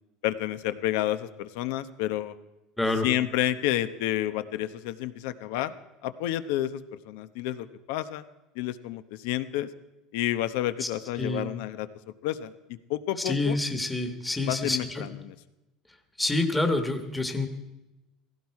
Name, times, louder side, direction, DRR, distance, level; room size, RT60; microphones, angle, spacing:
voice 1, 0.2-2.3 3.0-5.7 6.0-8.2 8.5-9.7 10.1-11.9 12.2-12.5 12.9-13.6 14.4-15.3, left 13 dB, 75° left, 13 dB, 0.9 m, -30 dB
voice 2, 13.2-15.0 16.2-17.5, left 2 dB, 5° left, 6 dB, 1.4 m, -27 dB
16.5 x 16.5 x 4.8 m, 1.0 s
cardioid pair, 150°, 0 cm